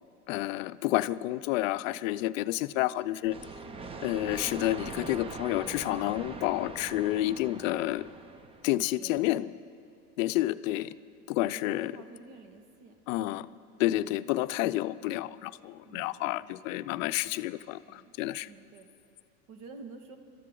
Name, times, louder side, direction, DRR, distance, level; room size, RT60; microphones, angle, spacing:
voice 1, 0.3-3.4 4.0-8.1 8.6-9.5 10.2-10.9 11.3-11.9 13.1-13.5 13.8-18.5, left 16 dB, 60° left, 15 dB, 0.6 m, -30 dB
sound 1, 3.2-9.0, right 4 dB, 15° right, 0.4 m, -42 dB
voice 2, 9.0-9.5 11.3-13.0 13.8-13.9 15.9-16.5 17.9-18.1 18.5-18.9 19.5-20.2, right 4 dB, 55° right, 6 dB, 1.8 m, -50 dB
26.5 x 13.5 x 3.8 m, 2.5 s
hypercardioid pair, 110°, 45 cm